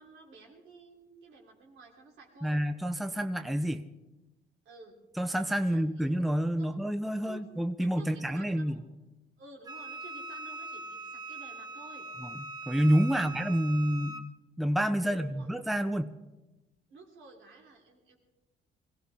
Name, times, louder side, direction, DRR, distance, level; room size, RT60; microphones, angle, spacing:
voice 1, 0.0-2.6 4.7-5.0 5.6-6.1 6.6-6.8 7.2-7.5 7.8-8.8 9.4-12.1 13.1-13.3 15.0-15.5 16.9-18.2, right 3 dB, 80° right, -1 dB, 3.6 m, -52 dB
voice 2, 2.4-3.8 5.2-8.8 12.2-12.3 12.7-14.3 14.6-16.1, equal, ahead, 10 dB, 0.6 m, -28 dB
Wind instrument woodwind instrument, 9.6-14.3, right 2 dB, 20° right, 1.6 m, -42 dB
21.5 x 16.0 x 3.6 m, 1.0 s
cardioid pair, 90°, 20 cm